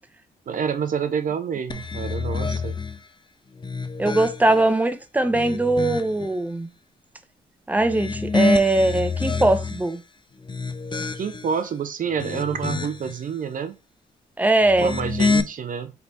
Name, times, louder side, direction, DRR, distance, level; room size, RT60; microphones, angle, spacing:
voice 1, 0.5-2.8 11.2-13.8 14.8-15.9, right 7 dB, 50° right, 0.5 m, -28 dB
sound 1, 1.7-3.0 3.5-4.7 5.2-6.3 7.8-9.9 10.4-11.5 12.0-13.1 14.6-15.4, left 4 dB, 25° left, 0.6 m, -27 dB
voice 2, 4.0-6.7 7.7-10.0 14.4-14.9, right 2 dB, 10° right, 0.7 m, -21 dB
3.3 x 2.9 x 4.0 m
hypercardioid pair, 45°, 17 cm